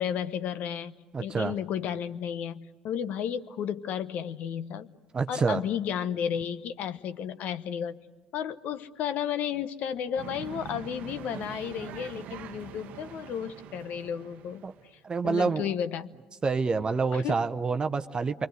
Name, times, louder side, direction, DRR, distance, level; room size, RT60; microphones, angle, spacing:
voice 1, 0.0-0.9 1.2-4.9 5.3-8.0 8.3-14.6 15.2-16.1 17.1-17.4, left 9 dB, 60° left, 12 dB, 1.0 m, -33 dB
voice 2, 1.1-1.5 5.1-5.6 14.6-14.7 15.0-15.7 16.4-18.5, right 4 dB, 30° right, 9 dB, 0.8 m, -27 dB
sound 1, 10.2-15.0, right 10 dB, 60° right, 0.9 m, -44 dB
27.5 x 24.0 x 8.1 m, 1.3 s
hypercardioid pair, 60°, 3 cm